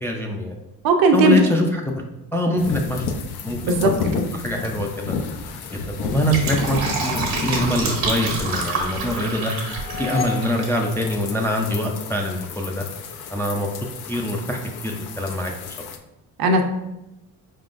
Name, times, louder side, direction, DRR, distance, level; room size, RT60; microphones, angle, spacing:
voice 1, 0.0-0.6 1.1-2.0 2.3-3.1 3.4-4.0 4.3-5.2 5.7-9.5 10.0-12.8 13.3-13.7 14.1-15.5 15.8-15.9, left 1 dB, 5° left, 0 dB, 0.4 m, -24 dB
voice 2, 0.8-1.4 3.6-4.2 16.4-16.6, right 3 dB, 60° right, 4 dB, 0.7 m, -17 dB
sound 1, 2.6-16.0, left 5 dB, 70° left, 0.6 m, -32 dB
Fill (with liquid), 6.0-10.8 11.1-11.2, right 3 dB, 85° right, 1.4 m, -28 dB
Sound Design - Doorbell, 9.6-11.9, left 8 dB, 35° left, 0.9 m, -34 dB
4.7 x 3.7 x 2.5 m, 0.94 s
cardioid pair, 95°, 40 cm